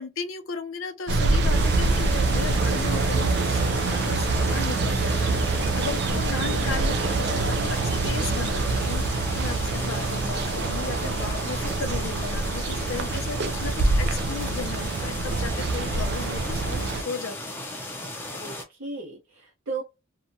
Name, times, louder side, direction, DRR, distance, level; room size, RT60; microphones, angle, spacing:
voice 1, 0.0-17.7, left 4 dB, 75° left, 0.5 m, -36 dB
sound 1, 1.1-17.0, right 3 dB, 50° right, 0.3 m, -25 dB
sound 2, 1.5-18.6, left 1 dB, 10° left, 0.5 m, -36 dB
voice 2, 6.1-6.7 18.3-19.8, right 3 dB, 80° right, 0.8 m, -36 dB
2.8 x 2.2 x 2.6 m
head